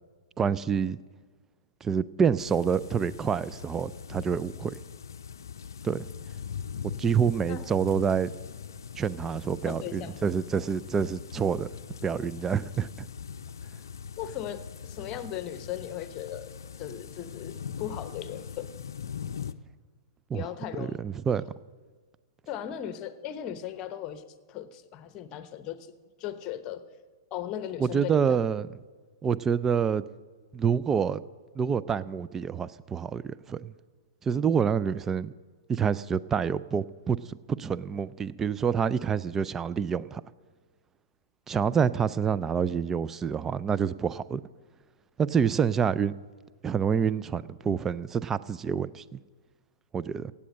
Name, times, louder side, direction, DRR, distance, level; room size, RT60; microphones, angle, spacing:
voice 1, 0.4-1.0 1.8-4.7 5.8-6.0 7.0-8.3 9.0-11.7 12.0-13.1 20.3-20.5 20.8-21.4 27.8-28.7 29.2-30.0 30.5-31.2 31.6-33.7 34.2-35.3 35.7-40.2 41.5-44.4 45.2-46.1 46.6-49.2 49.9-50.3, right 7 dB, 15° right, 16 dB, 0.4 m, -27 dB
sound 1, 2.4-19.5, left 7 dB, 70° left, 0.5 m, -41 dB
voice 2, 9.7-10.2 14.2-18.7 20.3-21.0 22.5-25.9 26.2-26.8 27.3-28.4, left 10 dB, 35° left, 12 dB, 1.0 m, -37 dB
17.0 x 8.5 x 6.5 m, 1.4 s
figure-of-eight pair, 110°, 2 cm